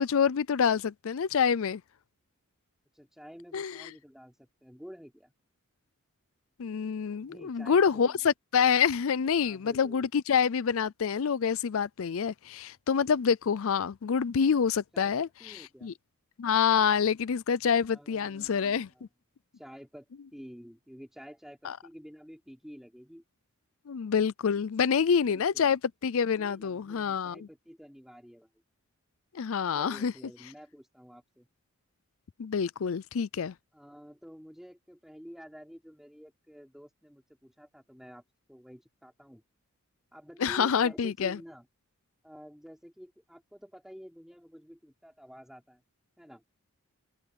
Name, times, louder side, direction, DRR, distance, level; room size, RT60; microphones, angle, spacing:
voice 1, 0.0-1.8 3.5-3.8 6.6-15.3 15.8-15.9 16.4-18.9 21.6-21.8 23.9-27.4 29.3-30.1 32.4-33.5 40.4-41.4, left 6 dB, 65° left, 0.4 m, -27 dB
voice 2, 2.9-5.3 7.2-8.2 9.4-10.1 14.9-15.9 17.9-19.0 19.6-20.1 20.3-23.2 25.2-25.7 26.3-28.5 29.7-31.5 33.7-38.2 38.5-39.4 40.1-41.7 42.2-45.8 46.2-46.4, equal, ahead, 4.9 m, -50 dB
head